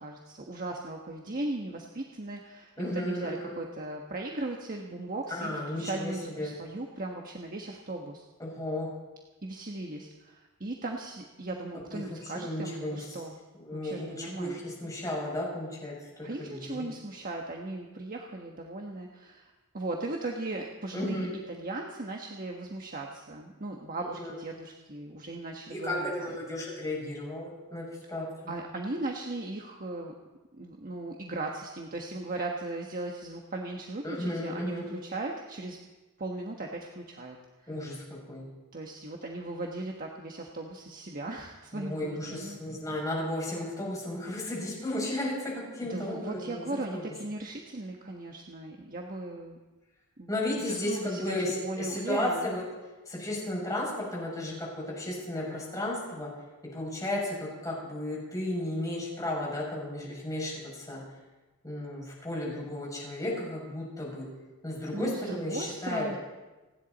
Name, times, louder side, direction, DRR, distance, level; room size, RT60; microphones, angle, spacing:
voice 1, 0.0-8.2 9.4-13.4 13.7-14.6 16.2-26.1 28.5-30.1 30.5-35.8 36.2-37.4 37.6-37.7 38.7-42.6 45.9-49.6 50.2-52.5 64.9-66.2, right 2 dB, 40° right, 1 dB, 1.3 m, -37 dB
voice 2, 2.8-3.6 5.3-6.5 8.4-8.9 11.9-13.0 13.6-16.9 20.9-21.4 24.0-24.4 25.7-28.5 34.0-34.9 37.7-38.4 41.7-47.0 50.3-52.6 53.1-56.3 56.7-61.0 61.6-64.3 64.6-66.1, left 1 dB, 15° left, -4 dB, 6.6 m, -34 dB
30.0 x 11.0 x 4.1 m, 1.2 s
head